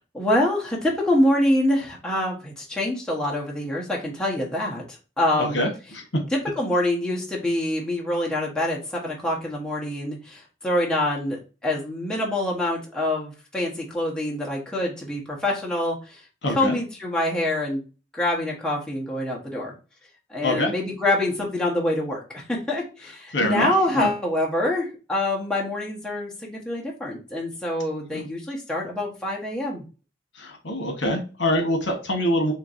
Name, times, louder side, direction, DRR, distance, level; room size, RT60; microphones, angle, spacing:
voice 1, 0.1-5.6 6.6-16.2 16.6-17.8 18.1-19.7 20.3-29.8, left 1 dB, 5° left, -4 dB, 1.0 m, -25 dB
voice 2, 5.4-6.0 16.4-16.8 20.4-20.7 23.3-24.1 28.1-28.2 30.3-32.5, left 1 dB, 75° left, 3 dB, 1.1 m, -25 dB
4.5 x 3.0 x 2.6 m, 0.33 s
head